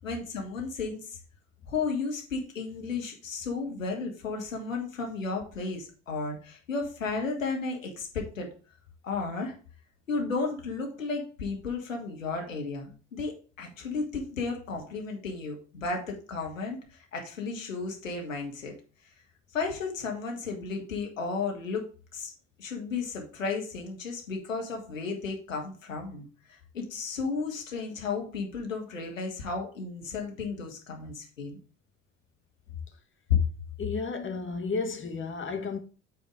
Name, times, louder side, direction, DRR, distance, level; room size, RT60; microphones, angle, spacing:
voice 1, 0.0-1.2 1.7-8.5 9.0-9.5 10.1-18.7 19.5-21.9 22.1-22.3 22.6-31.6 33.3-33.4, left 4 dB, 90° left, 1.7 m, -33 dB
voice 2, 33.8-35.8, left 4 dB, 30° left, 1.3 m, -32 dB
8.3 x 4.3 x 4.8 m
hypercardioid pair, 65°, 38 cm